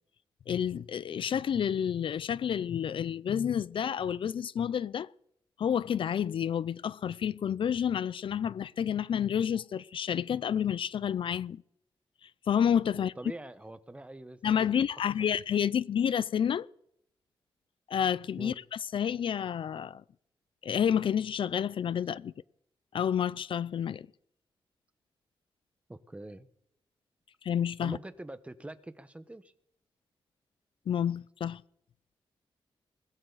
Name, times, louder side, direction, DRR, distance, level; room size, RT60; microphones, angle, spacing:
voice 1, 0.5-5.1 5.6-11.6 12.2-13.1 14.4-16.7 17.9-18.5 18.9-20.0 20.6-22.3 22.9-24.1 27.4-28.0 30.9-31.6, left 8 dB, 65° left, 0.5 m, -29 dB
voice 2, 12.9-14.8 18.4-18.6 25.9-26.5 27.8-29.5, right 1 dB, 15° right, 1.2 m, -44 dB
21.0 x 14.0 x 4.1 m
cardioid pair, 85°, 9 cm